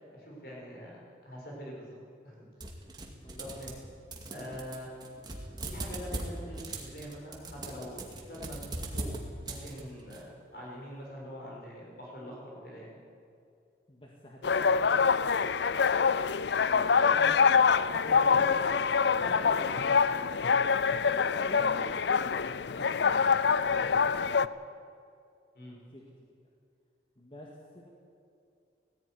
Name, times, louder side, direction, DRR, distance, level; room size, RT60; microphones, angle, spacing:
voice 1, 0.1-1.9 2.2-2.4 3.4-3.8 4.3-5.0 5.6-8.7 8.9-9.1 9.4-10.3 10.5-13.0 16.7-17.5 18.1-18.4 19.2-20.3 25.5-25.8, equal, 55° left, -3 dB, 7.1 m, -44 dB
sound 1, 2.6-10.2, right 2 dB, 25° right, 2.3 m, -39 dB
voice 2, 3.2-3.5 4.3-4.5 13.9-15.7 17.0-18.6 21.1-22.4 22.8-24.5 25.9-26.0 27.2-27.5 27.7-27.9, equal, 30° left, -2 dB, 2.0 m, -48 dB
sound 2, 14.4-24.5, left 6 dB, 70° left, 0.5 m, -25 dB
18.0 x 15.0 x 9.7 m, 2.5 s
head